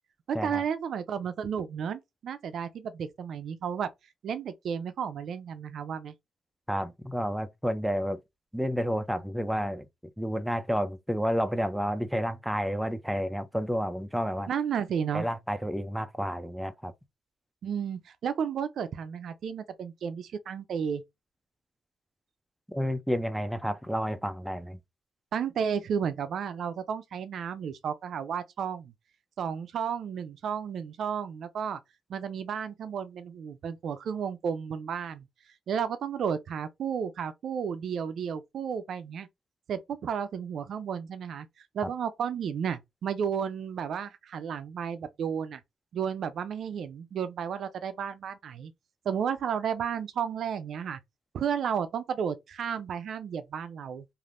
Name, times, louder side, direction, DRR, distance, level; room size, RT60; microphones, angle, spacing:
voice 1, 0.3-3.9 4.2-6.1 14.5-15.3 17.6-21.0 25.3-28.9 29.4-31.8 32.1-35.3 35.7-39.3 39.7-41.5 41.7-45.6 45.9-48.7 49.1-51.0 51.3-54.0, right 7 dB, 65° right, 0.4 m, -32 dB
voice 2, 6.7-8.2 8.5-9.9 10.2-14.5 15.1-16.9 22.7-24.8 41.8-41.9, equal, ahead, 0.4 m, -30 dB
3.3 x 2.5 x 2.4 m
cardioid pair, 90°, 0 cm